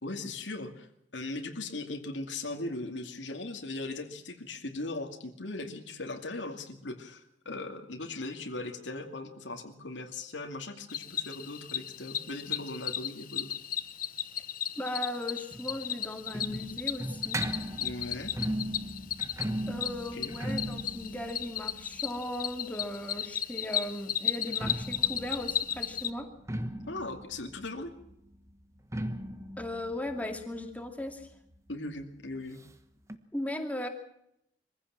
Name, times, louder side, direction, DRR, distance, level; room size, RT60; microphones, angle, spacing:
voice 1, 0.0-13.5 17.8-18.3 20.1-20.4 26.9-27.9 31.7-32.6, left 2 dB, 85° left, 3 dB, 2.5 m, -39 dB
Cricket, 10.9-26.1, left 10 dB, 50° left, 0.9 m, -35 dB
voice 2, 14.8-17.4 19.7-26.3 29.6-31.3 33.3-33.9, left 1 dB, 10° left, 4 dB, 2.4 m, -37 dB
sound 1, 15.5-23.2 24.3-31.7 32.0-32.1 32.3-32.4 33.1-33.2, right 1 dB, 15° right, 1.3 m, -38 dB
23.5 x 15.5 x 7.6 m, 0.77 s
head